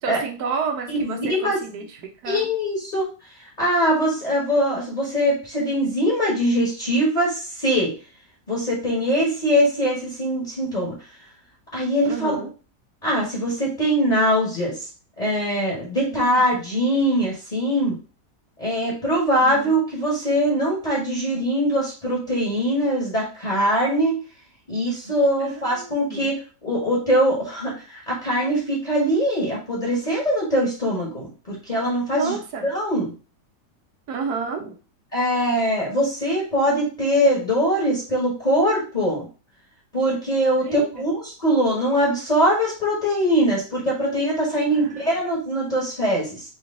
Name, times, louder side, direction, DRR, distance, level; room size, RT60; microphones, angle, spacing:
voice 1, 0.0-2.5 12.1-12.5 16.1-16.4 19.4-19.7 25.4-26.3 32.1-32.7 34.1-34.7 40.6-41.1 44.7-45.0, right 5 dB, 75° right, 3 dB, 1.4 m, -31 dB
voice 2, 0.9-1.6 2.2-3.1 3.6-7.9 8.5-10.9 11.7-12.3 13.0-14.7 15.2-17.9 18.6-24.2 24.7-32.3 32.6-33.1 35.1-39.2 39.9-46.4, equal, 25° left, -5 dB, 1.4 m, -22 dB
4.2 x 3.2 x 3.7 m, 0.35 s
omnidirectional pair, 1.7 m